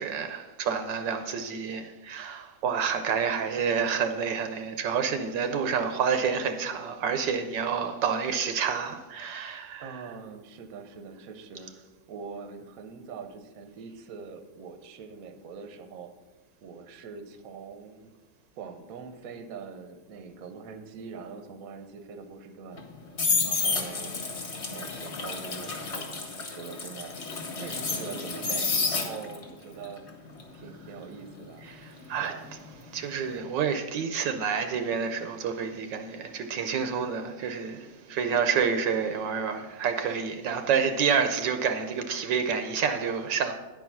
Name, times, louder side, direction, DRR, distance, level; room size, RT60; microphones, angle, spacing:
voice 1, 0.0-10.0 31.6-32.3 32.9-43.5, right 6 dB, 75° right, 1.3 m, -28 dB
voice 2, 5.4-5.8 9.8-16.1 16.6-18.1 18.6-22.8 23.4-24.4 24.7-30.1 30.5-32.5, right 5 dB, 60° right, 1.0 m, -43 dB
sound 1, 22.7-29.5 29.8-32.7 33.0-33.3, left 4 dB, 40° left, 1.2 m, -31 dB
10.5 x 4.7 x 5.8 m
omnidirectional pair, 2.1 m